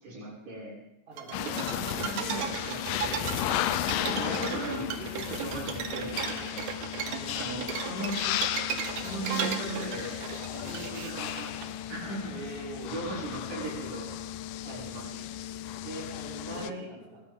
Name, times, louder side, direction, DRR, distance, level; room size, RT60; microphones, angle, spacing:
voice 1, 0.0-0.7 1.4-3.6 3.9-7.0 7.3-8.3 8.9-10.2 10.5-14.1 14.7-15.1 15.8-16.1 16.4-16.9, right 2 dB, 90° right, -8 dB, 8.5 m, -38 dB
voice 2, 1.1-1.4 4.1-4.3 7.0-7.6 12.3-13.5 14.6-14.8 16.1-17.2, right 2 dB, 20° right, -6 dB, 6.1 m, -45 dB
sound 1, 1.2-11.7, right 8 dB, 75° right, 1.6 m, -36 dB
sound 2, 1.3-16.7, left 12 dB, 85° left, 1.9 m, -35 dB
21.0 x 17.0 x 3.7 m, 0.83 s
omnidirectional pair, 4.7 m